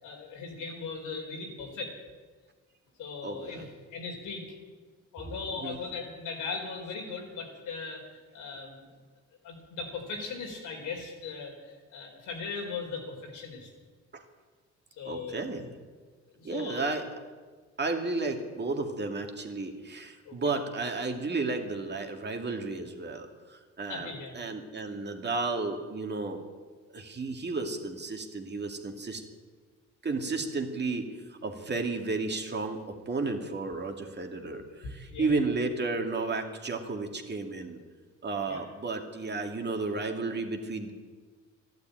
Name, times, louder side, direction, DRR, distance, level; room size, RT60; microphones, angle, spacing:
voice 1, 0.0-1.9 3.0-4.4 5.1-8.0 8.3-8.8 9.4-13.7 15.0-15.5 16.3-17.0 20.3-20.4 23.9-24.4 35.1-35.5 38.5-38.6, left 4 dB, 90° left, 1 dB, 4.0 m, -38 dB
voice 2, 3.2-3.7 5.2-5.8 14.1-14.2 15.1-15.7 16.4-17.0 17.8-26.4 26.9-29.2 30.0-37.8 38.2-40.9, right 3 dB, 35° right, 3 dB, 2.3 m, -33 dB
13.0 x 12.0 x 9.1 m, 1.5 s
cardioid pair, 90°, 30 cm